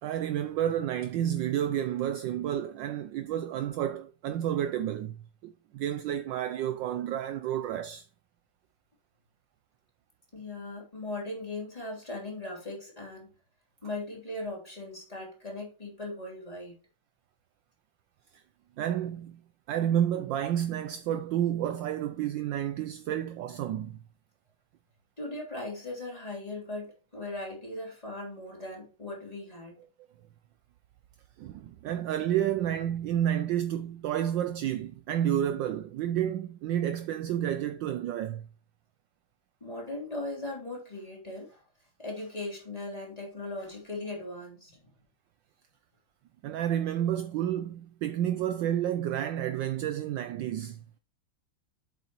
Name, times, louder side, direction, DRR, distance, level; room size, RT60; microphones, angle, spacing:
voice 1, 0.0-5.2 5.4-8.0 18.8-19.4 19.7-24.0 31.4-38.5 46.4-50.8, right 11 dB, 75° right, 1.1 m, -30 dB
voice 2, 10.3-13.4 13.8-16.8 25.2-29.8 39.6-41.6 42.0-44.8, left 2 dB, 15° left, 3.4 m, -38 dB
8.1 x 6.8 x 3.0 m
omnidirectional pair, 2.4 m